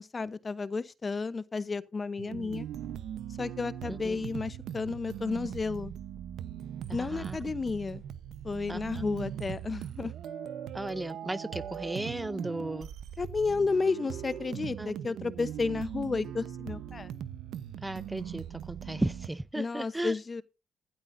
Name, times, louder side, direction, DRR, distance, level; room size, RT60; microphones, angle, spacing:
voice 1, 0.0-2.7 3.4-5.9 6.9-8.0 8.4-10.1 13.2-17.1 19.5-20.4, left 4 dB, 30° left, 0.9 m, -32 dB
sound 1, 2.2-19.3, right 10 dB, 75° right, 0.9 m, -40 dB
voice 2, 3.8-4.2 6.9-7.4 8.7-9.0 10.7-12.9 14.8-14.9 17.8-20.1, right 1 dB, 10° right, 0.6 m, -35 dB
15.5 x 12.0 x 2.6 m
cardioid pair, 90°, 0 cm